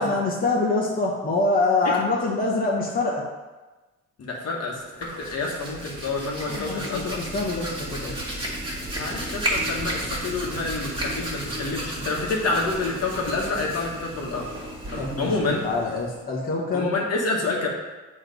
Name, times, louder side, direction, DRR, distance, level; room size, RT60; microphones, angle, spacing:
voice 1, 0.0-3.2 6.5-8.2 15.0-16.9, left 3 dB, 30° left, -3 dB, 1.2 m, -25 dB
voice 2, 4.2-7.2 9.0-14.4 14.9-15.6 16.7-17.7, left 3 dB, 55° left, -2 dB, 1.4 m, -28 dB
Hands, 4.8-16.2, right 1 dB, 15° right, 2.0 m, -33 dB
7.2 x 3.3 x 5.2 m, 1.2 s
cardioid pair, 90°, 30 cm